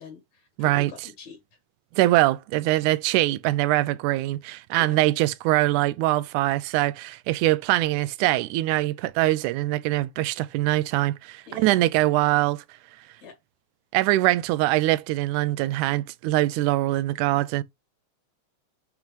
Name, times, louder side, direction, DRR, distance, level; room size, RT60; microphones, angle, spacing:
voice 1, 0.0-1.4 4.7-4.9 11.5-11.9 13.2-13.4, left 4 dB, 65° left, 2.8 m, -44 dB
voice 2, 0.6-0.9 1.9-12.6 13.9-17.6, right 17 dB, 85° right, 2.1 m, -23 dB
7.4 x 5.2 x 3.0 m
omnidirectional pair, 3.5 m